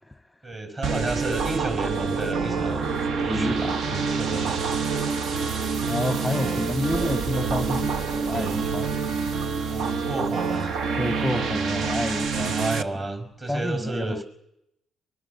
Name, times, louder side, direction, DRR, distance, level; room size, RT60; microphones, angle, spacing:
voice 1, 0.4-4.6 6.4-6.7 9.7-10.7 12.5-14.2, right 2 dB, 30° right, 5.2 m, -32 dB
sound 1, 0.8-12.8, right 5 dB, 70° right, 1.2 m, -27 dB
sound 2, 1.5-7.9 12.9-13.4, right 2 dB, 55° right, 2.7 m, -43 dB
voice 2, 3.3-4.2 5.9-9.3 11.0-12.6 12.9-13.0 13.5-14.2, left 1 dB, 5° left, 0.9 m, -30 dB
23.5 x 21.5 x 7.1 m
cardioid pair, 90°, 0 cm